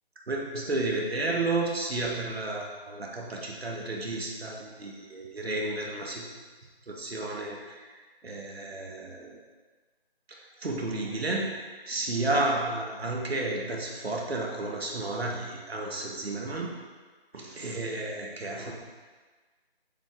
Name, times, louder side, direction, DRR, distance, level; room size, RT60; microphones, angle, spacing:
voice 1, 0.3-6.3 6.9-8.0 8.2-9.4 10.3-16.7 17.3-18.7, right 2 dB, 80° right, -1 dB, 1.4 m, -32 dB
7.2 x 3.6 x 3.6 m, 1.4 s
figure-of-eight pair, 175°, 30 cm